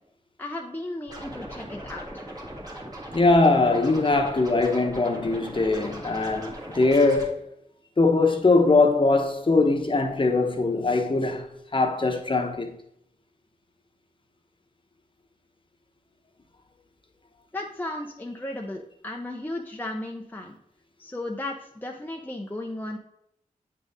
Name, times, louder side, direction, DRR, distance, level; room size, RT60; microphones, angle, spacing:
voice 1, 0.4-2.2 17.5-20.6 21.0-23.0, left 1 dB, 15° left, 0.6 m, -35 dB
Scratching (performance technique), 1.1-7.3, right 1 dB, 25° right, 1.6 m, -39 dB
voice 2, 3.1-7.4 8.0-11.5 11.7-12.7, left 3 dB, 35° left, 1.0 m, -21 dB
8.4 x 4.0 x 3.6 m
wide cardioid pair, 80°, 14 cm